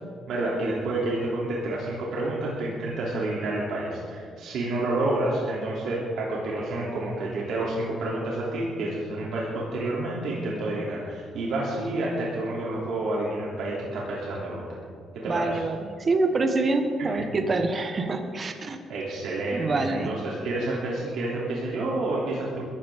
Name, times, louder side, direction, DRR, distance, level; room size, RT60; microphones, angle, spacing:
voice 1, 0.3-14.6 15.1-15.6 17.0-17.3 18.9-22.7, right 2 dB, 80° right, -5 dB, 3.3 m, -29 dB
voice 2, 15.3-18.8 19.5-20.1, right 3 dB, 40° right, 5 dB, 1.7 m, -26 dB
22.0 x 14.0 x 3.8 m, 2.2 s
cardioid pair, 90°, 0 cm